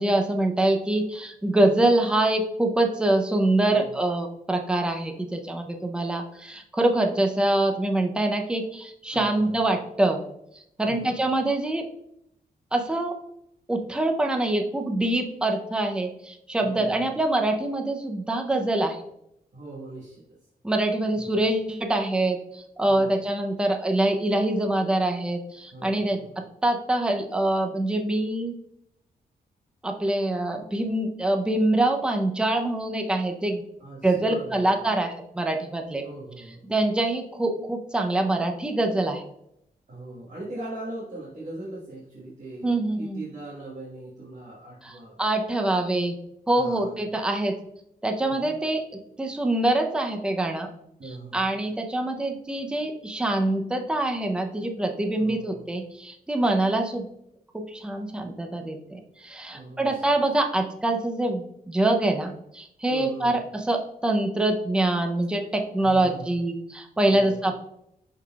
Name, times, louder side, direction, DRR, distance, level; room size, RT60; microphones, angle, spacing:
voice 1, 0.0-10.2 10.5-11.9 12.7-13.1 13.7-19.0 20.6-28.5 29.8-33.6 34.0-36.0 36.7-39.2 42.6-43.2 44.8-46.2 46.5-47.6 48.0-48.8 49.2-50.7 51.3-57.1 57.5-67.6, right 1 dB, 5° right, 3 dB, 0.5 m, -25 dB
voice 2, 3.7-4.0 9.1-9.6 10.8-11.2 16.6-17.1 19.5-20.2 21.1-21.4 22.8-23.2 25.7-26.3 33.8-34.8 36.0-36.6 39.9-42.7 43.0-45.2 46.6-47.1 48.3-48.6 51.0-51.5 55.1-55.6 59.5-60.0 62.9-63.4 65.8-66.4 67.1-67.5, right 2 dB, 45° right, -5 dB, 1.3 m, -40 dB
11.0 x 3.8 x 2.3 m, 0.78 s
wide cardioid pair, 160°, 16 cm